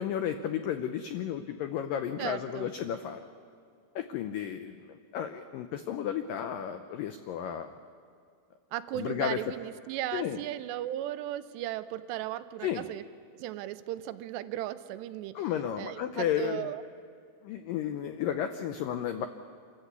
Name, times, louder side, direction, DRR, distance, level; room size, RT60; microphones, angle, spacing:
voice 1, 0.0-3.2 4.0-7.7 8.9-9.4 10.1-10.4 12.6-12.9 15.4-16.7 17.4-19.3, left 9 dB, 90° left, 8 dB, 1.9 m, -33 dB
voice 2, 2.2-2.7 8.7-13.0 13.3-15.4 15.8-16.8, right 13 dB, 80° right, 12 dB, 2.8 m, -36 dB
27.0 x 14.5 x 8.3 m, 2.2 s
omnidirectional pair, 5.0 m